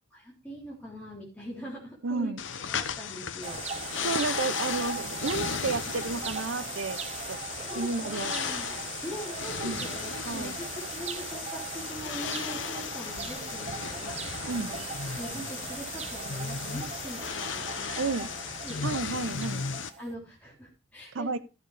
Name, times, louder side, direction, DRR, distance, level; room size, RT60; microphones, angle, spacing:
voice 1, 0.1-2.3 2.7-4.1 7.7-14.8 15.2-18.1 18.6-18.8 19.8-21.4, equal, 5° left, -5 dB, 3.5 m, -42 dB
voice 2, 2.0-2.4 4.0-7.0 7.3-7.4 7.8-8.3 9.6-9.9 10.2-10.5 14.5-14.7 18.0-18.3 18.8-19.7 21.1-21.4, right 3 dB, 80° right, 11 dB, 0.7 m, -31 dB
sound 1, 2.4-19.9, left 6 dB, 70° left, 0.9 m, -36 dB
sound 2, 3.4-20.1, right 6 dB, 35° right, 0.6 m, -39 dB
13.5 x 6.9 x 4.8 m, 0.31 s
head